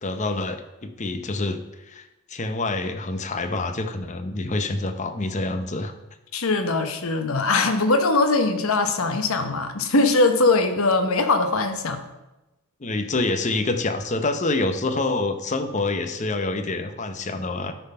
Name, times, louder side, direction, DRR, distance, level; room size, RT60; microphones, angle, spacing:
voice 1, 0.0-5.9 12.8-17.7, left 2 dB, 35° left, 8 dB, 0.7 m, -27 dB
voice 2, 6.3-12.0, left 3 dB, 75° left, 7 dB, 0.9 m, -21 dB
12.0 x 4.1 x 5.5 m, 1.0 s
head